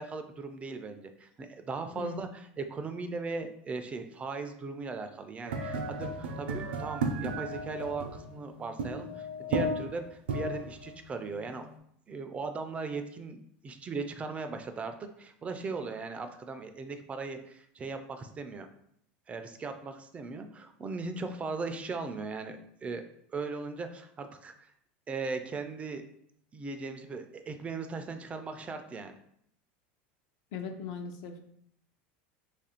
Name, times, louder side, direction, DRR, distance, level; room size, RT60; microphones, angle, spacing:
voice 1, 0.0-11.7 12.1-18.7 19.3-23.0 23.3-24.5 25.1-26.0 26.5-29.2, right 4 dB, 20° right, 7 dB, 0.3 m, -38 dB
sound 1, 5.5-11.8, right 2 dB, 90° right, 0.5 m, -34 dB
voice 2, 30.5-31.4, left 5 dB, 65° left, 5 dB, 0.6 m, -39 dB
3.0 x 2.5 x 4.2 m, 0.70 s
supercardioid pair, 120°, 6 cm